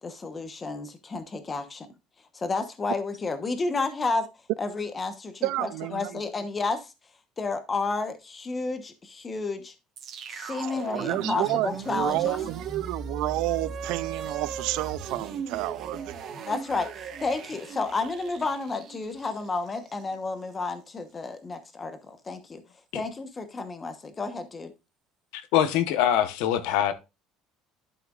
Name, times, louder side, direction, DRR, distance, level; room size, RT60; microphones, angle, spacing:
voice 1, 0.0-1.9 2.3-4.3 4.6-6.9 7.4-9.7 10.3-12.4 16.5-22.6 22.9-24.7, left 3 dB, 20° left, 1.0 m, -31 dB
voice 2, 5.4-6.2 10.9-16.1, right 17 dB, 70° right, 0.4 m, -30 dB
sound 1, 10.0-20.2, right 6 dB, 40° right, 1.2 m, -38 dB
voice 3, 25.3-26.9, left 10 dB, 85° left, 1.0 m, -23 dB
11.5 x 5.9 x 2.4 m
cardioid pair, 165°, 0 cm